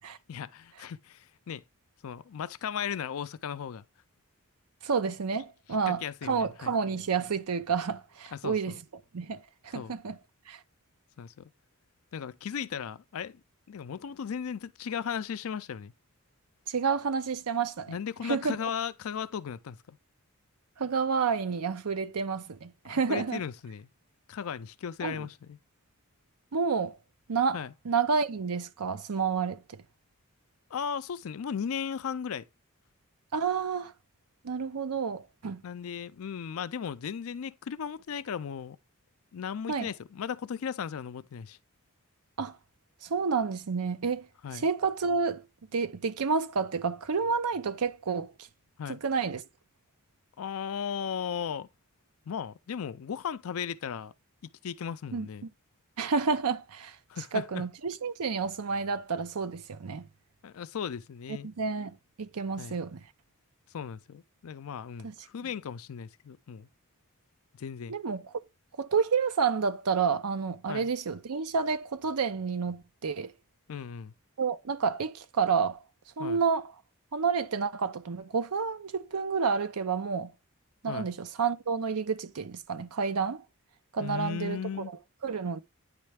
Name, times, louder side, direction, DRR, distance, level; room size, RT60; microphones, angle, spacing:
voice 1, 0.3-1.6 2.0-3.8 5.9-6.7 8.3-8.8 9.7-10.0 11.2-11.5 12.1-15.9 17.9-20.0 22.9-23.9 24.3-25.6 27.5-27.7 30.7-32.5 35.6-38.8 39.3-41.6 44.4-44.7 48.8-49.0 50.4-51.7 52.3-54.1 54.4-55.5 57.1-57.6 60.4-61.5 62.6-62.8 63.7-66.7 67.5-68.0 70.7-70.9 73.7-74.1 76.2-76.4 80.9-81.1 84.0-84.9, left 7 dB, 70° left, 0.4 m, -36 dB
voice 2, 4.8-8.7 9.1-10.2 10.5-10.6 16.7-17.9 18.2-18.6 20.8-23.4 25.0-25.3 26.5-27.0 27.3-27.6 27.8-29.8 33.3-33.9 34.4-35.6 39.7-39.9 42.4-42.6 43.0-44.3 44.6-45.4 45.7-48.3 48.9-49.4 55.1-55.3 56.0-57.0 57.3-60.1 61.4-63.0 65.0-65.1 67.9-68.2 68.8-73.3 74.4-75.8 76.2-76.7 77.1-80.3 80.8-83.4 83.9-84.9 85.2-85.6, right 5 dB, 85° right, 0.6 m, -30 dB
9.6 x 3.2 x 3.3 m
head